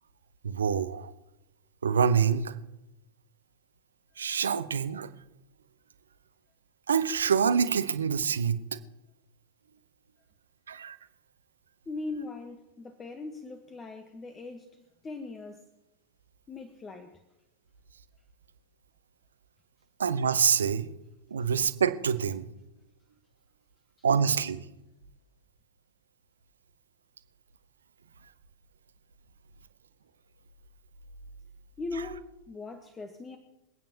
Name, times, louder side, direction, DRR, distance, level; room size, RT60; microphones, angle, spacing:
voice 1, 0.4-1.1 1.8-2.5 4.2-5.1 6.9-8.6 10.7-10.9 20.0-20.9 21.3-22.5 24.0-24.6, right 7 dB, 70° right, 0.9 m, -26 dB
voice 2, 11.8-15.7 16.5-17.2 21.4-21.5 24.0-24.1 31.8-33.4, left 3 dB, 20° left, 1.3 m, -40 dB
26.5 x 9.2 x 2.9 m
figure-of-eight pair, 90°, 0 cm